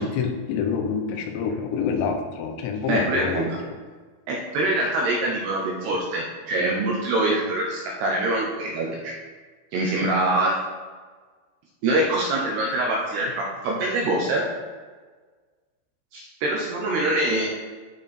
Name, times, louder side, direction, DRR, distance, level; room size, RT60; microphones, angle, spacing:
voice 1, 0.0-3.8 10.0-10.1, left 6 dB, 85° left, 4 dB, 3.6 m, -27 dB
voice 2, 2.9-3.6 4.3-9.1 9.7-10.6 11.8-14.4 16.1-17.5, right 1 dB, 75° right, -2 dB, 2.5 m, -24 dB
12.0 x 5.7 x 4.2 m, 1.4 s
omnidirectional pair, 5.8 m